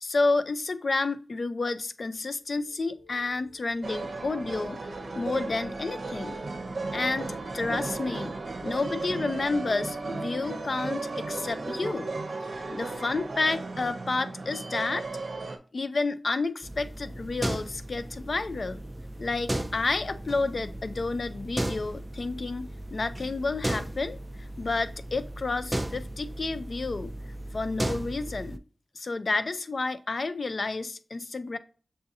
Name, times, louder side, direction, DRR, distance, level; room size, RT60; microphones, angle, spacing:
voice 1, 0.0-4.8 5.1-6.4 6.9-8.3 8.6-12.1 12.5-15.1 15.7-18.8 19.2-24.2 24.6-27.1 27.5-28.6 29.0-31.6, left 3 dB, 60° left, 12 dB, 0.4 m, -30 dB
sound 1, 2.2-12.7, left 1 dB, 80° left, 1.7 m, -53 dB
sound 2, 3.8-15.6, right 3 dB, 75° right, 0.6 m, -35 dB
sound 3, 16.6-28.6, right 1 dB, 15° right, 0.3 m, -36 dB
6.7 x 2.7 x 2.6 m, 0.39 s
wide cardioid pair, 75°, 0 cm